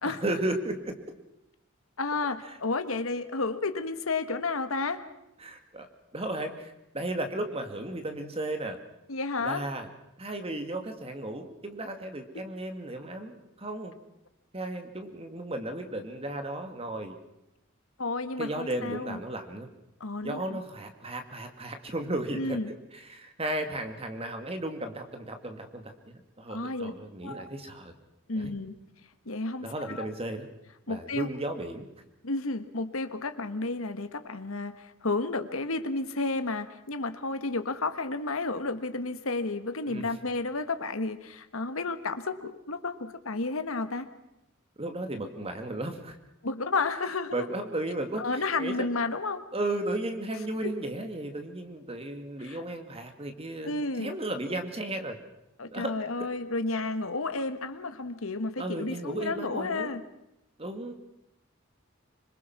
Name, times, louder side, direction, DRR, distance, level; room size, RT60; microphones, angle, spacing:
voice 1, 0.0-1.0 5.4-5.9 6.1-8.8 9.4-9.9 10.2-14.0 14.5-17.2 18.4-19.7 20.2-22.6 22.9-25.9 26.4-27.9 28.4-28.5 29.6-30.5 30.9-31.9 39.9-40.1 44.8-46.2 47.3-48.9 49.5-55.2 55.7-56.3 58.6-59.9 60.6-60.9, right 1 dB, 30° right, 6 dB, 2.3 m, -34 dB
voice 2, 2.0-5.0 9.1-9.6 12.3-12.4 18.0-19.2 20.0-20.6 22.3-22.7 26.5-26.9 27.2-27.5 28.3-28.8 29.2-30.1 30.9-31.3 32.2-44.1 46.4-47.5 48.2-49.4 50.6-50.7 52.4-52.6 53.6-54.1 55.6-60.0, left 3 dB, 85° left, 10 dB, 1.5 m, -32 dB
26.0 x 22.0 x 6.1 m, 0.87 s
head